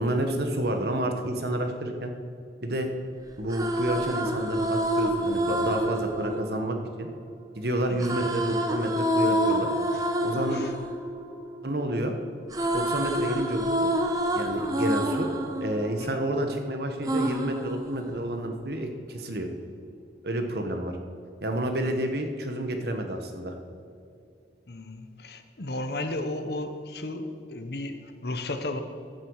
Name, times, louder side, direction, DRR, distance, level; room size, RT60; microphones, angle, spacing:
voice 1, 0.0-2.1 2.6-2.9 3.4-7.1 7.5-9.7 10.2-10.6 11.6-12.1 12.7-13.9 14.3-15.3 15.6-19.5 20.2-21.0 21.4-23.5, right 1 dB, 60° right, 5 dB, 1.3 m, -29 dB
sound 1, 3.3-7.4 8.0-12.0 12.3-16.5 17.0-18.5, right 1 dB, 20° right, 0.9 m, -28 dB
voice 2, 10.3-10.7 16.0-16.2 18.1-18.2 21.8-21.9 24.7-28.8, left 2 dB, 60° left, 8 dB, 1.0 m, -34 dB
15.0 x 8.8 x 4.8 m, 2.5 s
head